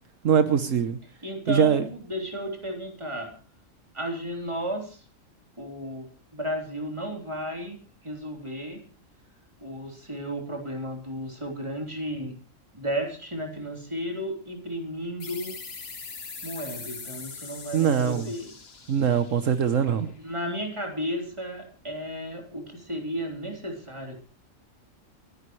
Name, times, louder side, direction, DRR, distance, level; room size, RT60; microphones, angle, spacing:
voice 1, 0.2-1.0 1.5-1.8 17.7-18.3 18.9-20.1, right 8 dB, 70° right, 10 dB, 1.3 m, -22 dB
voice 2, 1.2-3.3 3.9-5.0 5.6-8.8 9.6-12.3 12.7-15.6 16.4-18.5 20.2-24.2, equal, 20° right, 2 dB, 3.6 m, -33 dB
sound 1, 15.2-20.5, left 5 dB, 50° left, 1.6 m, -42 dB
30.0 x 11.0 x 3.2 m, 0.37 s
omnidirectional pair, 1.4 m